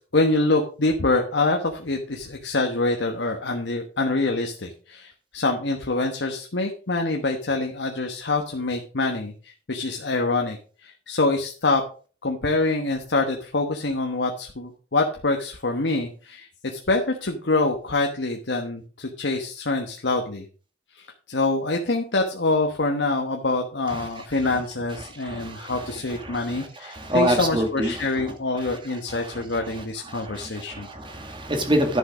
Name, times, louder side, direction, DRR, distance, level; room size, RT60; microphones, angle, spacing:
voice 1, 0.1-11.8 12.2-20.4 20.9-30.9, left 2 dB, 85° left, 3 dB, 1.2 m, -25 dB
voice 2, 25.2-25.7 26.3-26.6 26.9-27.9 30.1-32.0, equal, 30° right, 5 dB, 2.1 m, -26 dB
11.0 x 6.6 x 5.0 m, 0.39 s
head